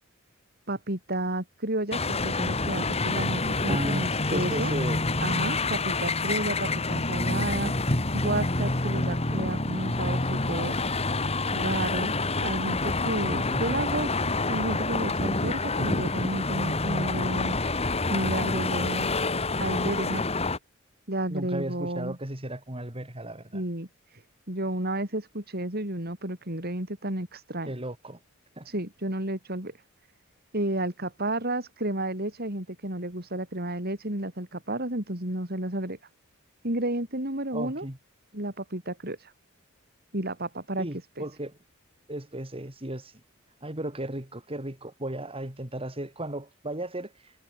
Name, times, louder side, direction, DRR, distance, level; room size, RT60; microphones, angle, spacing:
voice 1, 0.7-4.7 5.2-10.8 11.5-17.6 18.1-19.1 19.6-20.2 21.1-22.2 23.5-24.2 24.5-27.7 28.6-29.7 30.5-36.0 36.6-37.9 38.3-39.3 40.1-40.9 41.2-41.3, right 1 dB, 50° right, 5.6 m, -32 dB
sound 1, 1.9-20.6, left 3 dB, 30° left, 2.5 m, -27 dB
voice 2, 3.7-5.1 13.3-13.8 21.3-23.6 27.7-28.2 28.6-28.7 37.5-38.0 40.8-41.6 42.1-43.1 43.6-47.3, right 1 dB, 25° right, 3.6 m, -35 dB
head